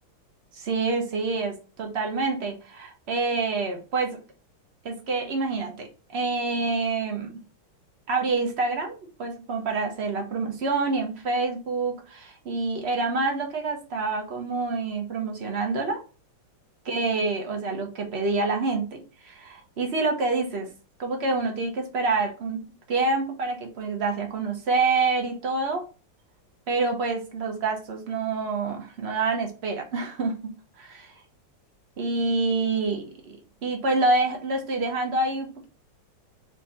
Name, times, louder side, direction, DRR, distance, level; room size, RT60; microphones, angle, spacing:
voice 1, 0.5-4.2 4.8-7.4 8.1-16.0 16.8-20.7 21.0-25.8 26.7-31.1 32.0-33.4 33.6-35.5, right 3 dB, 55° right, 3 dB, 0.7 m, -27 dB
4.4 x 2.8 x 3.9 m, 0.35 s
omnidirectional pair, 2.3 m